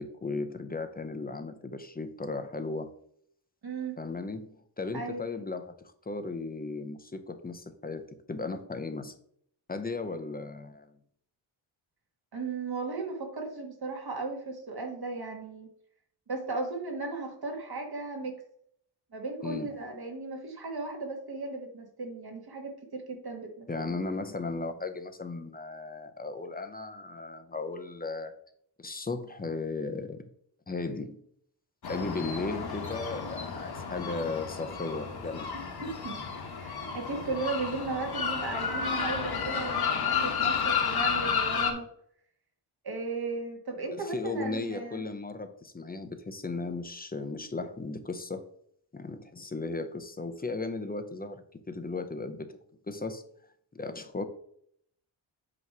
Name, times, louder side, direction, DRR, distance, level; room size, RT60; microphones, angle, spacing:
voice 1, 0.0-2.9 4.0-4.5 4.8-5.7 6.1-9.1 9.7-10.9 19.4-19.7 23.7-28.3 28.8-30.2 30.7-31.2 31.9-35.5 43.9-48.4 48.9-52.5 52.9-53.2 53.7-54.2, left 3 dB, 20° left, 8 dB, 0.6 m, -36 dB
voice 2, 3.6-4.0 4.9-5.3 12.3-15.7 16.3-18.4 19.1-23.9 35.5-36.2 36.6-41.9 42.8-45.0, right 3 dB, 50° right, 2 dB, 1.8 m, -36 dB
sound 1, 31.8-41.7, left 6 dB, 50° left, 1.3 m, -31 dB
8.3 x 3.1 x 6.0 m, 0.67 s
wide cardioid pair, 140°, 48 cm